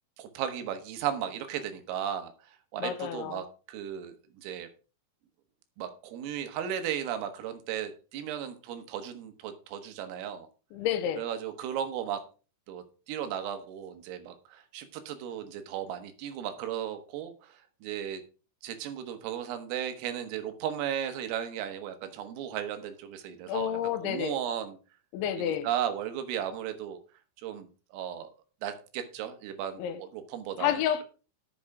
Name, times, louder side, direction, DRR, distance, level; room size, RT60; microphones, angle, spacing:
voice 1, 0.2-2.3 2.7-4.7 5.8-10.5 11.2-12.2 12.7-18.2 18.6-24.8 25.4-27.0 27.4-28.3 28.6-30.7, right 9 dB, 90° right, 4.1 m, -35 dB
voice 2, 2.8-3.4 10.7-11.2 23.5-24.4 25.1-25.7 29.8-30.0 30.6-31.0, left 10 dB, 80° left, 3.0 m, -30 dB
12.5 x 7.3 x 4.8 m
omnidirectional pair, 5.8 m